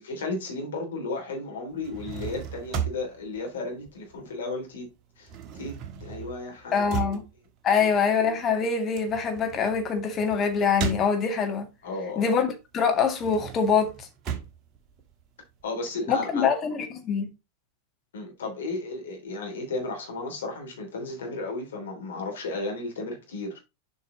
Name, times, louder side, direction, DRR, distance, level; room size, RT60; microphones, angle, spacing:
voice 1, 0.0-4.9 5.2-7.2 7.7-8.0 11.8-12.4 15.6-16.5 18.1-23.6, left 3 dB, 60° left, 3.3 m, -34 dB
sound 1, 1.7-4.6 4.8-11.7 12.1-15.7, right 6 dB, 35° right, 1.4 m, -37 dB
voice 2, 6.7-7.2 7.6-11.7 12.2-14.1 16.1-17.3, left 6 dB, 25° left, 1.9 m, -24 dB
7.3 x 5.4 x 3.9 m
figure-of-eight pair, 90°, 0 cm